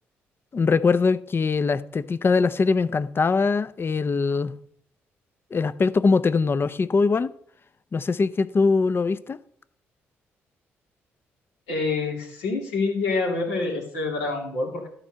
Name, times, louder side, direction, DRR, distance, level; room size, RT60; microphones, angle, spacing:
voice 1, 0.5-4.5 5.5-7.3 7.9-9.4, left 4 dB, 40° left, 0.6 m, -22 dB
voice 2, 11.7-14.9, left 3 dB, 85° left, 2.8 m, -27 dB
12.5 x 4.5 x 6.3 m
hypercardioid pair, 45°, 6 cm